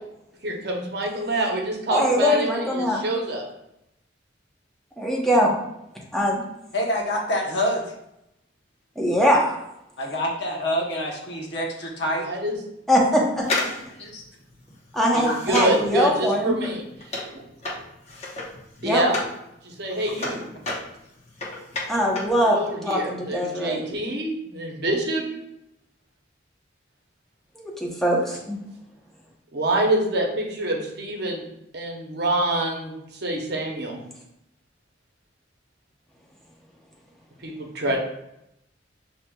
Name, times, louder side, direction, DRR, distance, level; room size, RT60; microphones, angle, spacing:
voice 1, 0.4-3.4 12.2-12.6 15.1-16.8 17.3-17.4 18.8-19.2 19.6-20.4 22.4-25.3 29.5-31.5 31.7-34.0 37.4-38.0, right 1 dB, 60° right, 1 dB, 0.8 m, -26 dB
voice 2, 1.9-3.0 5.0-5.5 6.1-6.4 9.0-9.5 12.9-13.5 14.9-16.6 18.8-19.0 21.9-23.8 27.6-28.6, equal, ahead, -3 dB, 0.8 m, -22 dB
voice 3, 6.7-7.9 10.0-12.3 14.0-14.2 15.2-15.4, equal, 60° left, -1 dB, 0.9 m, -26 dB
sound 1, 13.4-19.4 19.7-22.4 22.7-22.8, left 2 dB, 35° left, 0.9 m, -32 dB
7.4 x 2.9 x 2.3 m, 0.83 s
head